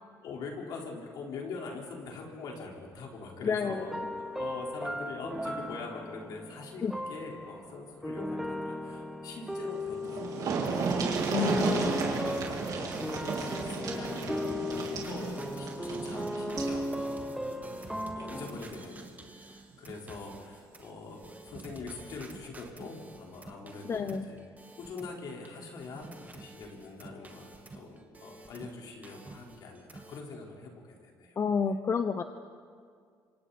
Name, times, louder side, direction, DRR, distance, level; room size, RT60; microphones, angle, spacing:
voice 1, 0.2-12.3 12.7-24.5 24.7-31.4, left 4 dB, 70° left, -1 dB, 4.6 m, -44 dB
voice 2, 3.4-4.0 6.8-6.9 11.3-12.0 23.8-24.3 31.4-32.2, left 5 dB, 40° left, 8 dB, 0.8 m, -30 dB
sound 1, 3.7-18.5, equal, 5° right, 1.4 m, -36 dB
sound 2, 9.7-9.8 10.0-16.8 18.1-18.2 18.6-18.7, right 5 dB, 65° right, 3.7 m, -33 dB
sound 3, 10.6-25.5 25.7-28.8 29.0-30.2, right 3 dB, 25° right, 2.1 m, -49 dB
28.0 x 26.0 x 4.4 m, 2.1 s
cardioid pair, 90°, 7 cm